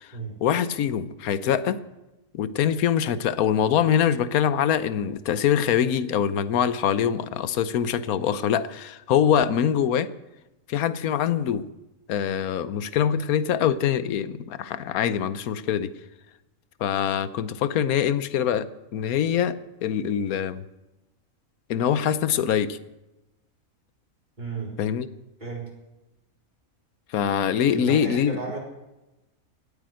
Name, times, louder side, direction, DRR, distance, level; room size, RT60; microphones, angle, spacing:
voice 1, 0.4-1.8 2.3-10.1 10.7-11.7 12.1-15.9 16.8-20.6 21.7-22.8 24.8-25.1 27.1-28.4, left 9 dB, 80° left, 15 dB, 1.2 m, -24 dB
voice 2, 24.4-24.8 25.4-25.7 27.7-28.6, right 4 dB, 30° right, -2 dB, 4.3 m, -33 dB
18.5 x 8.8 x 7.6 m, 0.99 s
omnidirectional pair, 1.5 m